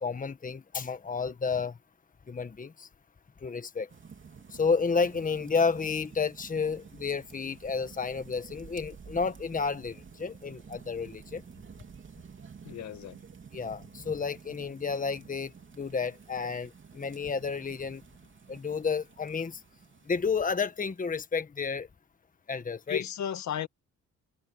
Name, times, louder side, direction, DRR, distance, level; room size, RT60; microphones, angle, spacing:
voice 1, 0.0-1.8 2.3-2.9 3.4-3.9 4.5-11.4 13.5-18.0 18.5-19.6 20.1-21.9 22.5-23.0, left 5 dB, 25° left, 1.4 m, -31 dB
sound 1, 3.9-21.2, right 6 dB, 40° right, 3.1 m, -51 dB
voice 2, 12.6-13.2 22.9-23.7, left 9 dB, 65° left, 1.9 m, -34 dB
open air
cardioid pair, 90°, 30 cm